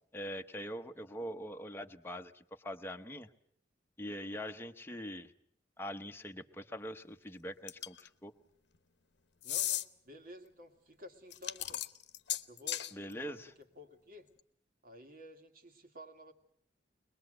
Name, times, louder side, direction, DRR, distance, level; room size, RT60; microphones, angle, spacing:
voice 1, 0.1-3.3 4.0-5.3 5.8-8.3 12.9-13.5, equal, 15° left, 5 dB, 1.0 m, -43 dB
sound 1, 7.7-8.1 9.4-9.8 11.3-12.9, left 13 dB, 65° left, 0.9 m, -35 dB
voice 2, 9.4-11.8 12.5-14.3 14.8-16.3, equal, 55° right, 6 dB, 2.3 m, -53 dB
22.0 x 22.0 x 7.9 m, 0.65 s
head